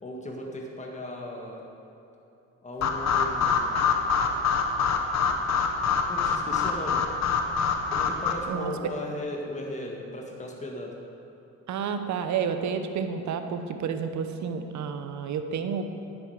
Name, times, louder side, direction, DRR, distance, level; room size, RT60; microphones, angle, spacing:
voice 1, 0.0-1.6 2.6-3.8 6.1-7.1 7.9-11.0, left 1 dB, 25° left, -1 dB, 1.8 m, -37 dB
sound 1, 2.8-8.3, left 5 dB, 65° left, 1.0 m, -25 dB
voice 2, 11.7-15.8, right 6 dB, 70° right, 8 dB, 0.9 m, -30 dB
10.0 x 8.9 x 4.9 m, 2.9 s
cardioid pair, 90°, 30 cm